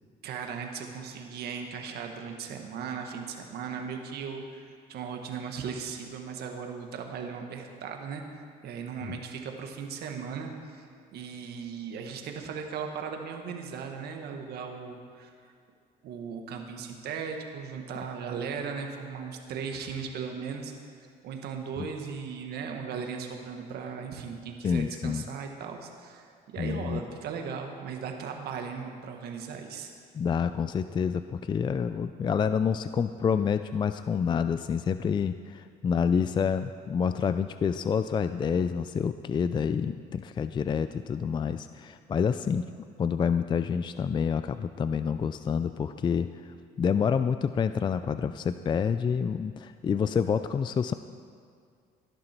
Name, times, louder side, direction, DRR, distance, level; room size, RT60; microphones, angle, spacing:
voice 1, 0.2-10.8 11.1-15.3 16.0-20.7 21.2-26.3 26.5-29.9, right 6 dB, 70° right, 3 dB, 1.7 m, -37 dB
voice 2, 24.6-25.2 26.6-27.0 30.1-42.7 43.0-46.3 46.8-50.9, left 6 dB, 25° left, 11 dB, 0.4 m, -28 dB
17.5 x 11.5 x 4.5 m, 2.2 s
cardioid pair, 110°, 17 cm